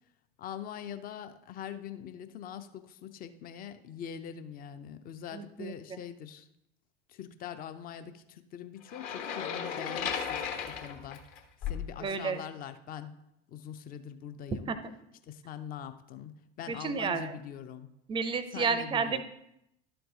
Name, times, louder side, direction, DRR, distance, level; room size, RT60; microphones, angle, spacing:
voice 1, 0.4-6.5 7.1-11.2 11.6-13.1 13.5-14.8 15.2-17.9 18.5-19.2, left 8 dB, 30° left, 11 dB, 0.6 m, -43 dB
voice 2, 5.3-5.7 12.0-12.4 14.7-15.0 16.7-17.4 18.1-19.2, right 5 dB, 15° right, 12 dB, 0.5 m, -31 dB
sound 1, 8.9-11.9, left 7 dB, 45° left, 1.1 m, -35 dB
11.5 x 4.6 x 3.9 m, 0.81 s
figure-of-eight pair, 75°, 32 cm